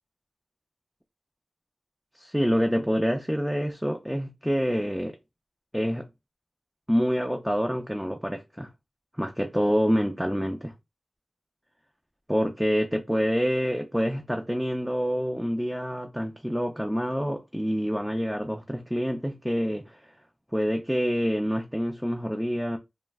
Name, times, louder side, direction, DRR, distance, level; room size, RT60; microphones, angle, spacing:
voice 1, 2.2-5.2 5.7-6.1 6.9-8.7 9.2-10.7 12.3-20.0 20.5-22.8, equal, 5° right, 0.4 m, -27 dB
2.3 x 2.1 x 3.3 m
wide cardioid pair, 60°, 0 cm